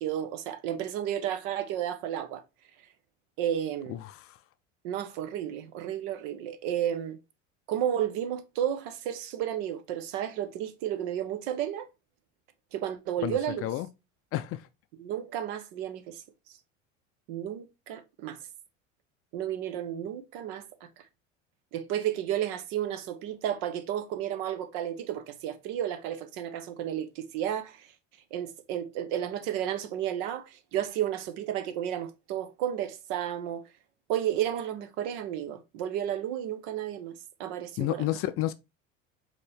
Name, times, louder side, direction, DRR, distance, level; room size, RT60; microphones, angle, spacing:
voice 1, 0.0-2.4 3.4-4.0 4.8-7.2 7.7-11.9 12.7-13.7 15.0-16.2 17.3-18.4 19.3-20.6 21.7-27.9 28.3-33.6 34.1-37.1 37.4-38.1, right 10 dB, 60° right, 0.8 m, -32 dB
voice 2, 3.9-4.4 13.2-13.9 14.3-14.7 37.8-38.5, left 14 dB, 40° left, 0.4 m, -31 dB
5.1 x 2.8 x 3.4 m
figure-of-eight pair, 70°, 37 cm